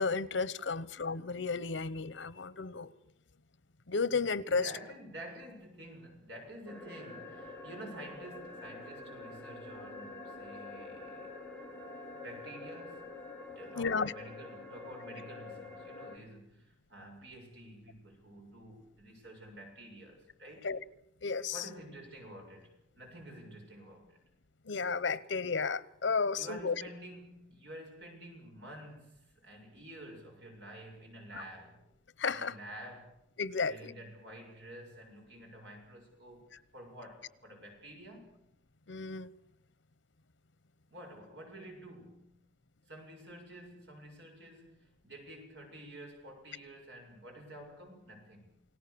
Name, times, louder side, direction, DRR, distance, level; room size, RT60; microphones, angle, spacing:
voice 1, 0.0-2.9 3.9-4.7 13.8-14.1 20.6-20.8 21.2-21.6 24.6-26.8 31.3-31.4 32.2-32.5 33.4-33.9 38.9-39.3, left 4 dB, 90° left, 1.0 m, -33 dB
voice 2, 4.5-11.4 12.2-13.2 13.6-20.7 21.5-24.2 26.3-31.9 32.3-33.2 33.6-38.4 40.9-42.4 42.9-48.6, right 1 dB, 70° right, 7.2 m, -50 dB
sound 1, 6.7-16.2, left 3 dB, 10° left, 2.6 m, -47 dB
28.5 x 19.0 x 7.0 m
head